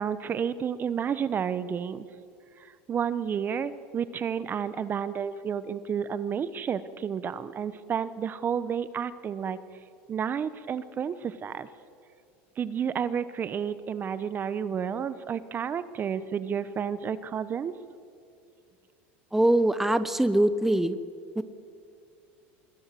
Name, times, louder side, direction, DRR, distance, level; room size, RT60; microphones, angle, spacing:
voice 1, 0.0-2.0 2.6-9.6 10.1-11.7 12.6-17.7, right 7 dB, 30° right, 14 dB, 1.0 m, -31 dB
voice 2, 19.3-21.0 21.4-21.5, right 1 dB, 5° right, 13 dB, 1.0 m, -23 dB
25.5 x 21.0 x 7.7 m, 2.4 s
supercardioid pair, 110°, 6 cm